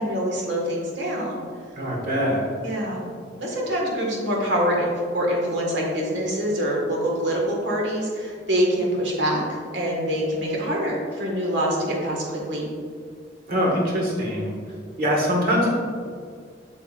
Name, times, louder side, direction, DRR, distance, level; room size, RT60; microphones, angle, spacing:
voice 1, 0.0-1.4 2.6-3.1 3.4-9.4 9.7-12.7, equal, 70° right, -2 dB, 1.7 m, -25 dB
voice 2, 1.7-2.4 13.5-14.5 15.0-15.7, equal, 50° right, -2 dB, 1.6 m, -23 dB
7.8 x 7.2 x 2.5 m, 2.1 s
head